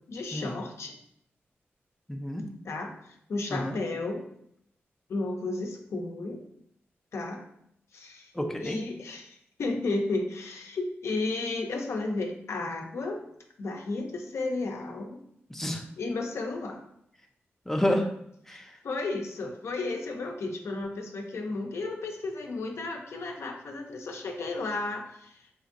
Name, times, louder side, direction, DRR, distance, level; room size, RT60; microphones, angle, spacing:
voice 1, 0.1-1.0 2.6-4.3 5.1-6.4 7.1-7.4 7.9-13.2 13.6-15.2 16.0-16.8 18.8-25.5, left 3 dB, 75° left, 2 dB, 0.5 m, -33 dB
voice 2, 2.1-2.4 3.5-3.8 8.3-8.8 15.5-15.8 17.7-18.1 18.5-18.8, left 1 dB, 5° left, 3 dB, 0.4 m, -29 dB
3.9 x 2.5 x 2.5 m, 0.73 s
cardioid pair, 65°, 5 cm